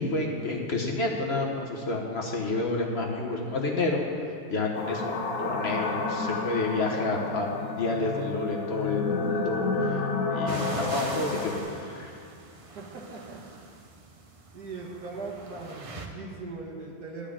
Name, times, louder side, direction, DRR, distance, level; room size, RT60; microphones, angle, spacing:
voice 1, 0.0-4.2 4.5-10.0 10.3-12.2, left 2 dB, 45° left, -1 dB, 1.2 m, -30 dB
sound 1, 4.7-11.6, left 4 dB, 70° left, 1.4 m, -30 dB
sound 2, 10.5-16.1, right 3 dB, 40° right, 0.5 m, -41 dB
voice 2, 14.5-17.3, right 3 dB, 80° right, -1 dB, 2.0 m, -39 dB
12.0 x 5.0 x 8.6 m, 2.5 s
omnidirectional pair, 1.6 m